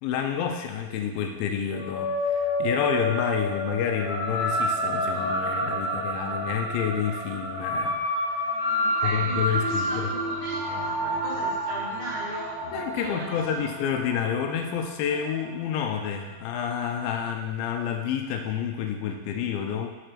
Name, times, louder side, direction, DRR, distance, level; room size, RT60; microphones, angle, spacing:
voice 1, 0.0-8.0 8.4-8.6 9.0-10.1 12.7-19.9, left 8 dB, 85° left, 4 dB, 2.2 m, -29 dB
sound 1, 1.7-16.4, equal, 60° left, 1.9 m, -29 dB
voice 2, 8.8-13.7, right 1 dB, 55° right, -10 dB, 2.3 m, -39 dB
6.9 x 4.9 x 4.4 m, 1.1 s
omnidirectional pair, 4.7 m